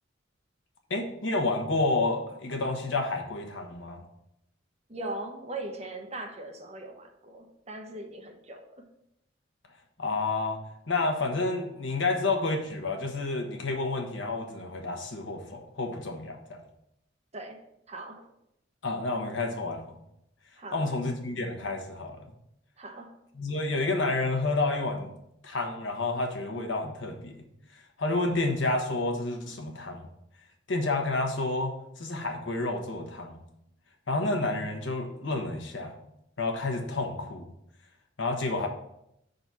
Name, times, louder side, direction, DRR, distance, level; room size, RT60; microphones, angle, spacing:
voice 1, 0.9-4.0 10.0-10.6 10.9-16.6 18.8-19.9 20.7-22.2 23.4-25.1 25.4-27.3 28.0-30.1 30.7-33.4 34.1-35.9 36.4-37.5 38.2-38.7, left 2 dB, 75° left, 3 dB, 1.1 m, -30 dB
voice 2, 4.9-8.8 17.3-17.6 17.9-18.3 20.6-20.9 22.8-23.2, right 2 dB, 35° right, 3 dB, 0.9 m, -40 dB
5.3 x 3.9 x 6.0 m, 0.80 s
head